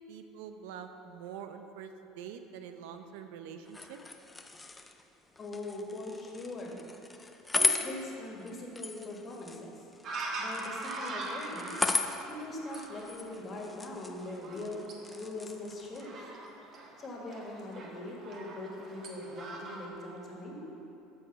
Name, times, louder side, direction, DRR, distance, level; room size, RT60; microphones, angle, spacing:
voice 1, 0.1-4.0, right 7 dB, 85° right, 7 dB, 0.6 m, -45 dB
sound 1, 3.6-16.0, left 3 dB, 10° left, 0.5 m, -37 dB
voice 2, 5.4-6.8 7.5-9.7 10.4-11.7 12.3-14.8 15.1-16.2 17.0-20.6, left 2 dB, 30° left, -1 dB, 1.8 m, -41 dB
sound 2, 10.0-19.9, right 2 dB, 45° right, 1.5 m, -42 dB
13.0 x 4.8 x 6.1 m, 2.9 s
cardioid pair, 130°, 0 cm